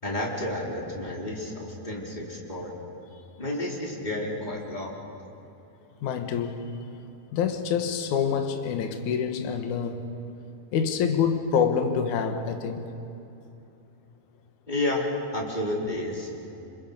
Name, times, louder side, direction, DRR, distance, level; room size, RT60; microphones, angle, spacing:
voice 1, 0.0-2.7 3.4-5.0 14.7-15.1 15.3-16.4, left 1 dB, 15° left, -3 dB, 3.7 m, -31 dB
voice 2, 6.0-6.7 7.3-10.1 10.7-12.9, left 7 dB, 70° left, 5 dB, 2.7 m, -26 dB
28.5 x 26.0 x 5.4 m, 2.8 s
omnidirectional pair, 3.7 m